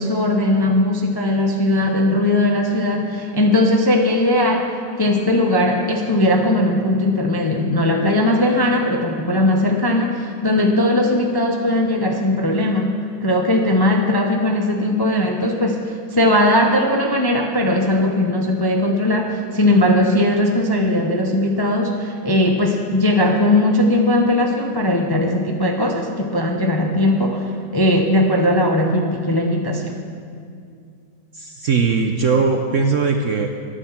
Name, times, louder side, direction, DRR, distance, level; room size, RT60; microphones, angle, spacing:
voice 1, 0.0-4.7 5.0-30.0, left 1 dB, 25° left, 2 dB, 0.5 m, -18 dB
voice 2, 31.3-33.5, right 5 dB, 60° right, 4 dB, 0.8 m, -19 dB
11.5 x 9.9 x 7.3 m, 2.3 s
omnidirectional pair, 2.0 m